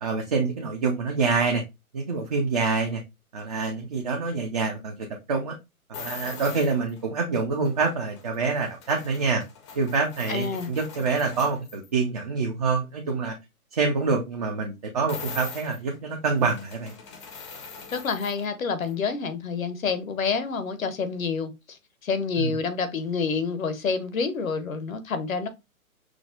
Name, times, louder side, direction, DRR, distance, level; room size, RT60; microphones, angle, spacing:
voice 1, 0.0-1.6 1.9-3.0 3.3-5.6 6.0-9.4 9.8-13.3 13.7-16.9 22.4-22.5, right 4 dB, 30° right, 0.4 m, -26 dB
sound 1, 5.9-7.0 7.6-11.9 15.1-18.5 18.8-18.9, left 5 dB, 20° left, 0.6 m, -42 dB
voice 2, 10.3-10.7 17.9-25.5, left 5 dB, 65° left, 0.9 m, -28 dB
6.0 x 2.1 x 2.4 m
figure-of-eight pair, 130°, 43 cm